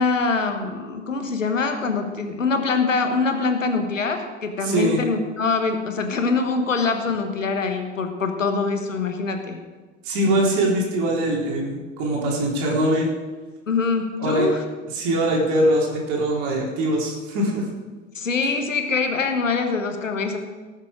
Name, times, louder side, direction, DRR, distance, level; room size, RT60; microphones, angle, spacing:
voice 1, 0.0-9.6 13.7-14.6 18.1-20.4, left 4 dB, 80° left, 6 dB, 1.4 m, -24 dB
voice 2, 4.6-5.0 10.0-13.1 14.2-14.5 14.9-17.7, right 1 dB, 50° right, -2 dB, 3.8 m, -22 dB
19.0 x 7.4 x 5.0 m, 1.3 s
figure-of-eight pair, 70°, 38 cm